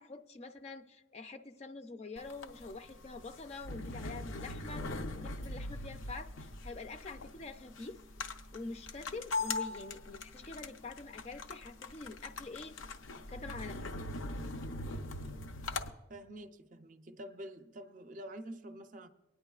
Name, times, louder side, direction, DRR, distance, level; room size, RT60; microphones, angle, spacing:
voice 1, 0.0-8.0 8.5-12.7 13.3-13.9, left 3 dB, 35° left, 0.4 m, -46 dB
sound 1, 2.2-15.9, left 2 dB, 85° left, 0.6 m, -41 dB
voice 2, 16.1-19.1, right 1 dB, 40° right, 0.5 m, -47 dB
23.5 x 9.6 x 2.3 m
head